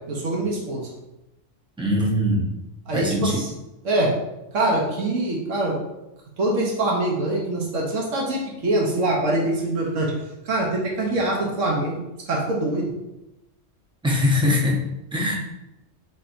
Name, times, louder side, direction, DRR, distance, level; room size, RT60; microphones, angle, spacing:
voice 1, 0.1-0.9 2.9-3.5 3.8-4.1 4.5-5.8 6.4-10.1 10.4-12.0 12.3-12.9, right 2 dB, 85° right, -2 dB, 1.3 m, -24 dB
voice 2, 1.8-2.5 2.9-3.4 14.0-14.8 15.1-15.3, left 1 dB, 5° right, -3 dB, 0.6 m, -21 dB
4.3 x 4.0 x 2.6 m, 0.95 s
omnidirectional pair, 1.3 m